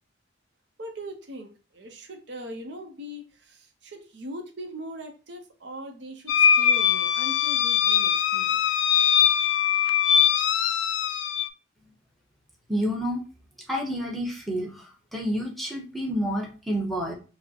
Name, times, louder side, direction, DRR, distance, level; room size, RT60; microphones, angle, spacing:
voice 1, 0.8-8.8, equal, 65° right, 4 dB, 0.7 m, -40 dB
sound 1, 6.3-11.5, left 8 dB, 75° left, 0.3 m, -22 dB
voice 2, 12.7-13.2 13.7-17.1, equal, ahead, -1 dB, 0.8 m, -29 dB
4.8 x 2.0 x 2.7 m, 0.34 s
head